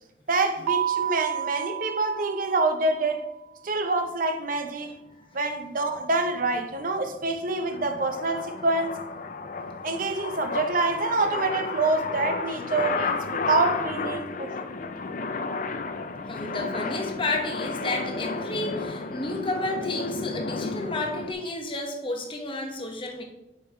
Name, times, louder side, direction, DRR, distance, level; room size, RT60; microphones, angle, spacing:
voice 1, 0.3-3.3 3.6-4.9 5.3-8.9 9.8-14.5, right 3 dB, 45° right, 0.7 m, -26 dB
Keyboard (musical), 0.7-3.2, right 10 dB, 85° right, 0.3 m, -30 dB
sound 1, 6.0-21.3, left 4 dB, 45° left, 0.5 m, -33 dB
voice 2, 16.3-23.2, left 2 dB, 25° left, 0.9 m, -31 dB
6.4 x 5.3 x 4.4 m
head